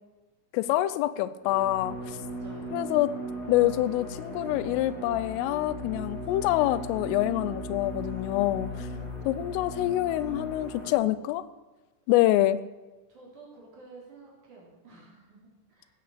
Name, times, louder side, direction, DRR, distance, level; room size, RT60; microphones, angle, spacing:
voice 1, 0.5-2.2 2.7-3.1 3.5-8.7 9.3-11.4 12.1-12.6, left 15 dB, 90° left, 15 dB, 3.3 m, -26 dB
sound 1, 1.4-10.9, equal, 20° left, 3.5 m, -38 dB
voice 2, 2.3-2.8 8.7-9.1 13.1-15.9, right 3 dB, 40° right, -3 dB, 4.9 m, -50 dB
15.0 x 8.6 x 7.3 m, 1.2 s
omnidirectional pair, 5.7 m